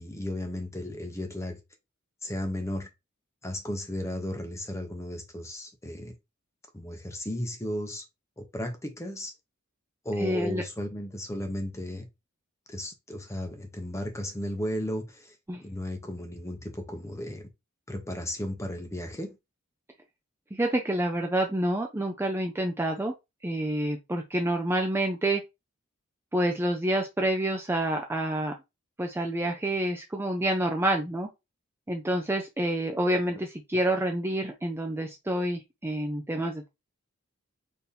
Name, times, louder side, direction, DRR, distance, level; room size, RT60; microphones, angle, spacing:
voice 1, 0.0-1.6 2.2-2.9 3.4-6.1 6.7-8.1 8.4-9.3 10.0-12.1 12.7-15.4 15.6-17.5 17.9-19.4 33.3-33.4, left 1 dB, 15° left, 0.8 m, -34 dB
voice 2, 10.2-10.6 15.5-15.6 20.5-23.1 23.4-25.4 26.3-28.5 29.0-31.3 31.9-36.7, right 1 dB, 10° right, 0.4 m, -28 dB
4.3 x 2.8 x 3.3 m
head